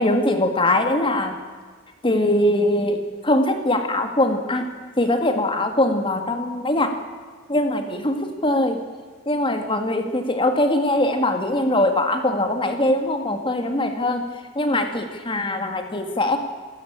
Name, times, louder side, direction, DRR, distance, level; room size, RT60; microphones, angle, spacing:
voice 1, 0.0-1.4 2.0-4.7 5.0-6.9 7.5-8.8 9.3-14.2 14.6-16.4, left 1 dB, 25° left, 6 dB, 2.1 m, -22 dB
27.0 x 13.5 x 8.8 m, 1.5 s
head